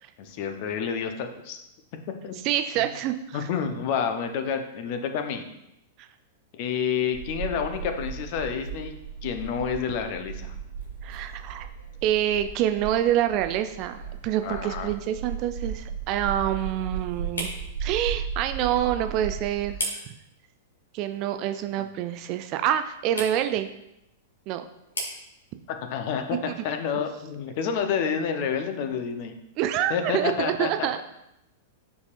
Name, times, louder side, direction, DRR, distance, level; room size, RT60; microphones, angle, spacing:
voice 1, 0.2-1.6 2.2-2.3 3.3-5.4 6.5-8.9 9.2-10.5 14.4-14.9 25.7-29.3 29.9-30.9, left 7 dB, 45° left, 6 dB, 0.8 m, -29 dB
voice 2, 2.4-3.5 6.0-6.1 11.0-11.7 12.0-17.5 17.8-19.8 20.9-23.7 24.5-24.6 27.0-27.1 29.6-31.0, right 11 dB, 40° right, 9 dB, 0.4 m, -27 dB
sound 1, 7.1-19.8, right 6 dB, 85° right, 2.0 m, -36 dB
sound 2, 13.8-28.6, equal, 70° left, 1.8 m, -42 dB
8.1 x 4.8 x 2.6 m, 0.85 s
figure-of-eight pair, 100°, 0 cm